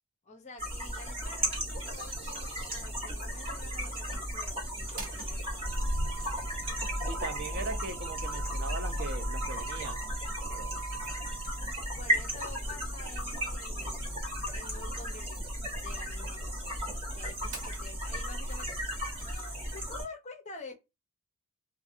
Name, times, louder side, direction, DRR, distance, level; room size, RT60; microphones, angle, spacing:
voice 1, 0.2-5.8 11.8-14.2 14.5-15.4 15.7-18.8 19.1-20.7, left 3 dB, 30° left, 0.6 m, -49 dB
sound 1, 0.6-20.1, equal, 25° right, 1.2 m, -36 dB
Motor vehicle (road), 4.9-19.4, equal, 70° right, 0.9 m, -39 dB
voice 2, 7.1-10.2 10.5-10.9, right 3 dB, 45° right, 0.5 m, -40 dB
2.5 x 2.4 x 2.6 m
head